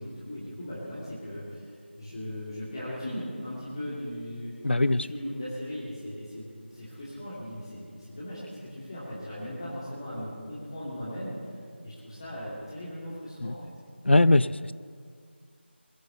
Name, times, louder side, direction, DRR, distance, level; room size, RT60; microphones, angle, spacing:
voice 1, 0.0-1.7 2.0-4.5 4.9-6.4 6.7-13.6, equal, 25° left, -8 dB, 2.6 m, -38 dB
voice 2, 4.6-5.1 13.4-13.5 14.0-14.7, left 2 dB, 70° left, 18 dB, 0.5 m, -21 dB
21.5 x 7.8 x 6.9 m, 2.1 s
figure-of-eight pair, 170°, 6 cm